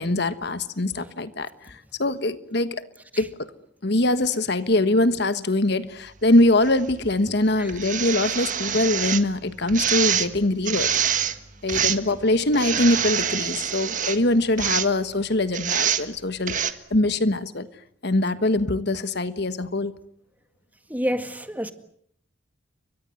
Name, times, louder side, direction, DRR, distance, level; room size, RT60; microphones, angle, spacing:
voice 1, 0.0-2.8 3.2-3.3 3.8-10.9 11.6-16.6 16.9-17.7 18.0-19.9, left 2 dB, 55° left, 1.4 m, -23 dB
sound 1, 6.6-6.7 7.7-9.2 9.7-10.3 10.6-11.4 11.7-12.1 12.5-14.2 14.6-14.9 15.5-16.0 16.5-16.7, right 9 dB, 40° right, 1.6 m, -25 dB
voice 2, 20.9-21.7, equal, 10° right, 1.8 m, -29 dB
30.0 x 24.0 x 7.8 m
head